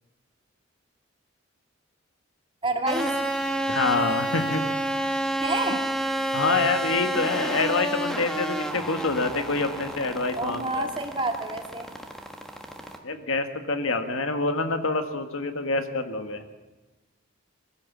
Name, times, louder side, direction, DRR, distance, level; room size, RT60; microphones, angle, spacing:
voice 1, 2.6-3.2 5.4-5.9 10.4-11.9, right 2 dB, 25° right, 3 dB, 2.2 m, -28 dB
sound 1, 2.9-13.0, right 1 dB, ahead, 1.5 m, -30 dB
voice 2, 3.7-4.6 6.3-10.9 13.0-16.4, left 3 dB, 80° left, 7 dB, 1.7 m, -26 dB
23.0 x 16.0 x 7.4 m, 1.2 s
head